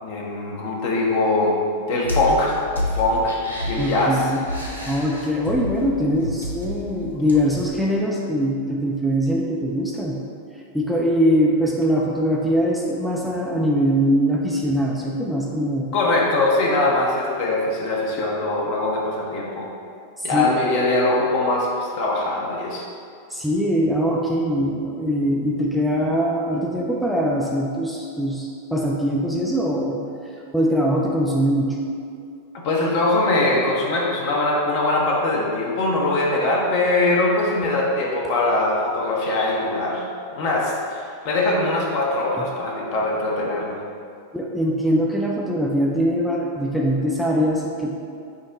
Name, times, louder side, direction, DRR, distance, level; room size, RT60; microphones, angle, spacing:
voice 1, 0.0-1.6 1.9-3.4 3.6-4.3 15.9-19.7 20.2-22.8 32.5-40.0 40.3-43.8, left 2 dB, 50° left, -2 dB, 0.8 m, -22 dB
sound 1, 2.0-7.7, left 1 dB, 80° left, 0.6 m, -30 dB
voice 2, 3.8-4.4 4.9-10.2 10.7-15.9 20.2-20.6 23.3-30.0 30.5-31.8 42.4-42.5 44.3-47.9, equal, ahead, -3 dB, 0.4 m, -22 dB
6.2 x 2.1 x 3.8 m, 2.4 s
figure-of-eight pair, 90°, 0 cm